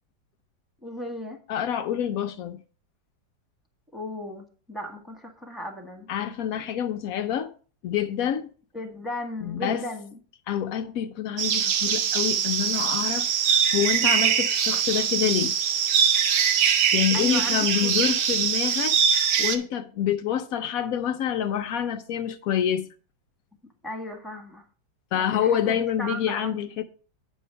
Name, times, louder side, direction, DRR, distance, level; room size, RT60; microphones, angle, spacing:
voice 1, 0.8-1.4 3.9-6.1 8.7-10.1 17.1-18.0 23.8-24.6 25.2-26.7, left 1 dB, ahead, 1.4 m, -36 dB
voice 2, 1.5-2.6 6.1-7.5 7.8-8.5 9.4-9.8 10.5-15.6 16.9-22.9 25.1-26.8, left 9 dB, 75° left, 0.8 m, -27 dB
sound 1, 11.4-19.6, right 8 dB, 70° right, 1.5 m, -23 dB
9.2 x 5.6 x 5.5 m
omnidirectional pair, 2.0 m